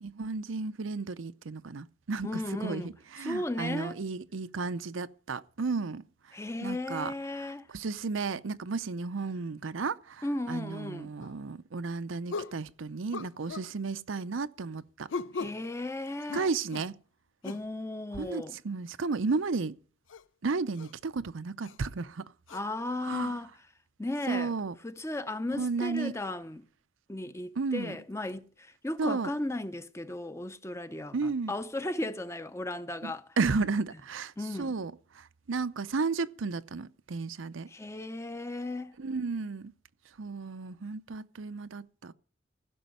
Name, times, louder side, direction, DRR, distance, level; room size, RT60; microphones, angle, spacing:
voice 1, 0.0-6.0 6.6-7.1 7.7-15.1 16.3-16.9 18.1-19.8 20.4-22.3 23.1-23.4 24.3-24.7 25.6-26.1 27.6-28.0 29.0-29.3 31.1-31.5 33.0-34.3 34.6-37.7 39.0-39.7 40.2-42.1, right 4 dB, 90° right, 0.6 m, -33 dB
voice 2, 2.2-4.0 6.3-7.7 10.2-11.1 12.4-12.5 15.3-16.5 17.4-18.6 22.5-23.5 24.0-24.6 24.8-26.7 27.1-33.3 34.4-34.7 37.7-38.9, left 1 dB, 15° left, 0.6 m, -35 dB
sound 1, 11.2-11.4 12.3-12.6 13.1-13.7 15.1-15.6 16.3-16.9 17.4-17.7 19.3-19.4 20.1-20.2 20.8-20.9 21.6-21.8 22.5-22.6, left 4 dB, 80° left, 0.5 m, -38 dB
15.5 x 6.3 x 9.2 m
head